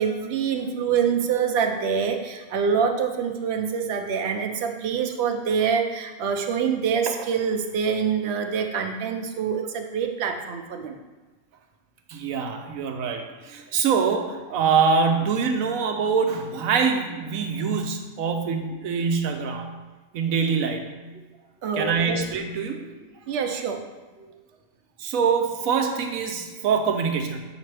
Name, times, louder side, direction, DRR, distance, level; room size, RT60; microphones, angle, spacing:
voice 1, 0.0-11.0 21.6-22.2 23.3-23.8 24.2-24.3, right 6 dB, 60° right, 5 dB, 0.8 m, -25 dB
voice 2, 12.1-19.7 20.1-20.9 21.8-22.8 25.0-27.4, right 5 dB, 75° right, 4 dB, 1.1 m, -24 dB
7.3 x 5.0 x 3.3 m, 1.2 s
omnidirectional pair, 1.5 m